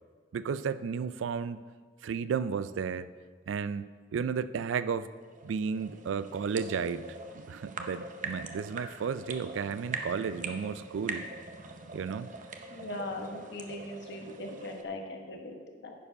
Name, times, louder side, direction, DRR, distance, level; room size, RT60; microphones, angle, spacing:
voice 1, 0.3-1.6 2.0-3.1 3.5-3.9 4.1-5.1 5.4-7.1 7.5-11.2 11.9-12.3, right 6 dB, 75° right, 15 dB, 0.3 m, -33 dB
sound 1, 5.1-14.8, right 4 dB, 45° right, 0.7 m, -42 dB
voice 2, 12.7-15.9, left 2 dB, 65° left, 3 dB, 1.2 m, -40 dB
9.8 x 4.8 x 5.5 m, 1.5 s
head